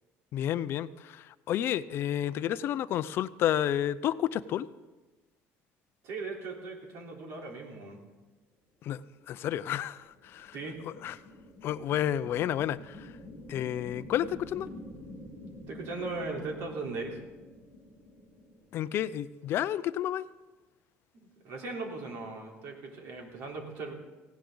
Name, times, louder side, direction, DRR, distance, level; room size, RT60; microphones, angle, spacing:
voice 1, 0.3-4.7 8.8-10.6 10.9-11.2 11.6-13.1 13.5-14.7 18.7-20.3, left 11 dB, 50° left, 15 dB, 0.5 m, -31 dB
voice 2, 6.0-8.0 10.5-10.8 15.7-17.2 21.2-23.9, right 3 dB, 65° right, 0 dB, 3.6 m, -38 dB
sound 1, 9.8-19.2, left 1 dB, 15° right, 5.3 m, -48 dB
18.5 x 17.0 x 3.9 m, 1.2 s
cardioid pair, 145°, 5 cm